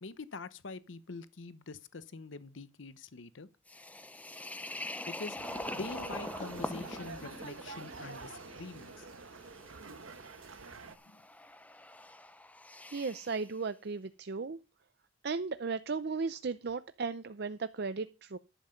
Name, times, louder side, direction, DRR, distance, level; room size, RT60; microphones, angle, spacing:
voice 1, 0.0-3.5 5.1-5.4 5.7-9.1 10.8-11.2, left 3 dB, 70° left, 0.8 m, -45 dB
sound 1, 3.7-13.5, left 1 dB, 5° left, 0.6 m, -44 dB
sound 2, 5.4-11.0, right 4 dB, 85° right, 1.1 m, -47 dB
voice 2, 12.9-14.6 15.2-18.4, right 4 dB, 55° right, 0.5 m, -36 dB
11.0 x 7.7 x 5.2 m
head